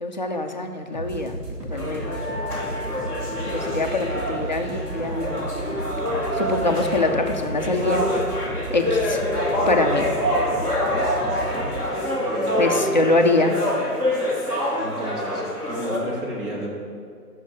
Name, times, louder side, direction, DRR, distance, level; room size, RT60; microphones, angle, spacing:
voice 1, 0.0-1.4 1.6-2.1 3.4-5.4 6.3-8.2 8.7-9.2 9.7-10.1 12.6-13.6, left 2 dB, 30° left, 4 dB, 0.5 m, -24 dB
sound 1, 0.9-11.9, right 1 dB, 90° right, 2.8 m, -34 dB
sound 2, 1.7-16.0, left 1 dB, 10° right, 1.1 m, -26 dB
Wind instrument woodwind instrument, 2.0-7.6, left 1 dB, 50° right, 1.5 m, -39 dB
voice 2, 10.9-11.8 12.1-12.9 14.8-16.7, right 1 dB, 35° right, -3 dB, 2.5 m, -34 dB
16.0 x 6.4 x 5.1 m, 2.2 s
figure-of-eight pair, 150°, 47 cm